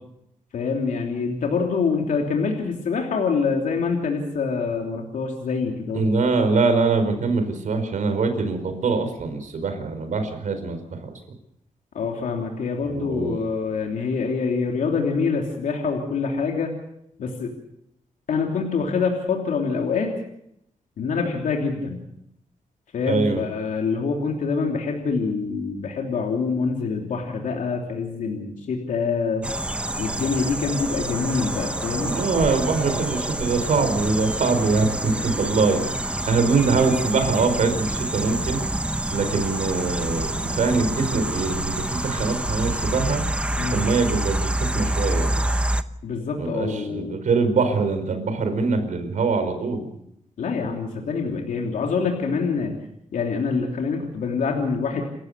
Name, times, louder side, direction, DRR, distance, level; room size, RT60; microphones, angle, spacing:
voice 1, 0.5-6.1 11.9-16.7 17.2-17.5 18.3-20.1 21.0-22.0 22.9-29.5 30.0-32.2 43.6-43.8 46.0-47.2 50.4-52.7 53.1-55.0, left 5 dB, 80° left, 1 dB, 3.1 m, -25 dB
voice 2, 5.9-11.1 12.8-13.4 23.1-23.4 32.0-38.6 39.1-43.2 43.7-45.4 46.4-49.9, right 4 dB, 75° right, 8 dB, 4.8 m, -23 dB
sound 1, 29.4-45.8, right 1 dB, 10° right, 0.9 m, -27 dB
29.0 x 14.5 x 6.8 m, 0.78 s
cardioid pair, 100°, 13 cm